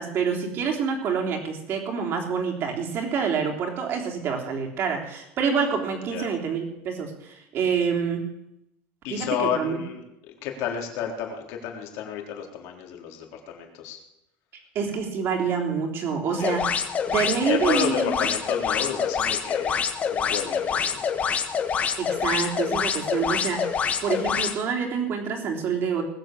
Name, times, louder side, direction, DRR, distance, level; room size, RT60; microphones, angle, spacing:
voice 1, 0.0-8.2 9.1-9.8 14.7-16.8 17.1-18.2 21.7-26.0, right 6 dB, 40° right, 1 dB, 3.5 m, -27 dB
voice 2, 9.0-14.0 16.4-16.6 17.3-19.8 20.1-21.0, left 8 dB, 60° left, 2 dB, 3.6 m, -31 dB
sound 1, 16.4-24.6, left 7 dB, 25° left, 1.3 m, -26 dB
20.0 x 7.9 x 7.6 m, 0.85 s
cardioid pair, 145°, 6 cm